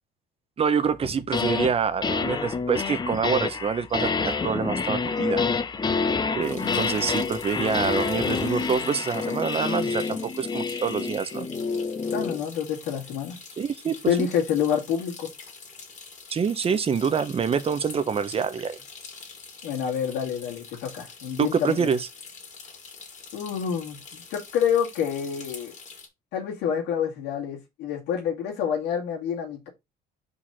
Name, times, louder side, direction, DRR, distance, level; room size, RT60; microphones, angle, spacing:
voice 1, 0.6-5.4 6.3-11.5 13.6-14.3 16.3-18.8 21.4-22.1, right 6 dB, 35° right, 0.9 m, -26 dB
sound 1, 1.0-1.7 2.0-12.4, left 5 dB, 25° left, 0.8 m, -28 dB
sound 2, 6.4-26.1, left 5 dB, 45° left, 2.6 m, -45 dB
voice 2, 12.1-13.4 14.1-15.3 19.6-21.9 23.3-25.7 26.3-29.7, left 8 dB, 90° left, 2.3 m, -27 dB
5.1 x 4.1 x 5.6 m
cardioid pair, 110°, 17 cm